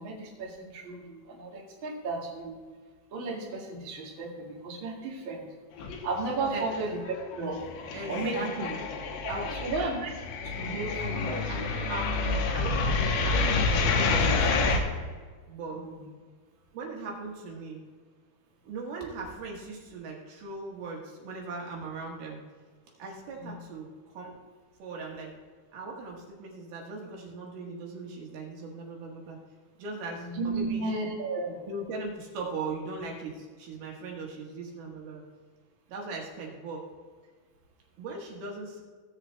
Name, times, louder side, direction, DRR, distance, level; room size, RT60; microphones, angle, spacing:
voice 1, 0.0-2.6 3.1-5.5 6.0-7.6 8.1-8.6 9.2-10.2 10.4-11.4 15.7-16.0 23.4-23.5 30.2-31.6, right 3 dB, 45° right, -3 dB, 1.7 m, -34 dB
sound 1, 5.8-6.5 6.7-14.8, left 4 dB, 70° left, 2.7 m, -28 dB
voice 2, 7.9-8.8 9.3-9.5 11.0-12.2 12.5-12.9 13.2-14.9 15.5-15.9 16.7-17.8 18.6-22.4 23.0-24.4 24.8-25.3 25.7-29.4 29.8-30.9 31.7-35.2 35.9-36.9 38.0-38.8, right 3 dB, 65° right, -1 dB, 3.1 m, -39 dB
16.5 x 7.4 x 3.3 m, 1.5 s
omnidirectional pair, 4.9 m